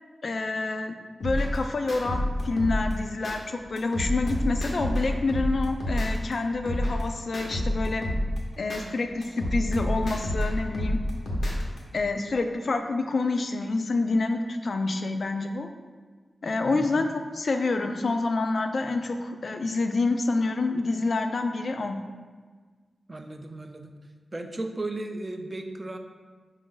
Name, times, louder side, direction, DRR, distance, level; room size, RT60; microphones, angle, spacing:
voice 1, 0.2-1.0 1.2-8.1 8.6-11.0 11.9-15.7 16.4-22.0, left 3 dB, 55° left, 6 dB, 0.3 m, -27 dB
sound 1, 1.2-3.4 3.8-6.3 6.7-8.8 9.2-11.8, left 1 dB, 80° left, 0.9 m, -29 dB
voice 2, 16.7-17.1 23.1-23.9 24.3-26.0, right 2 dB, 25° right, 5 dB, 0.3 m, -35 dB
4.9 x 2.5 x 3.8 m, 1.5 s
wide cardioid pair, 130°, 0 cm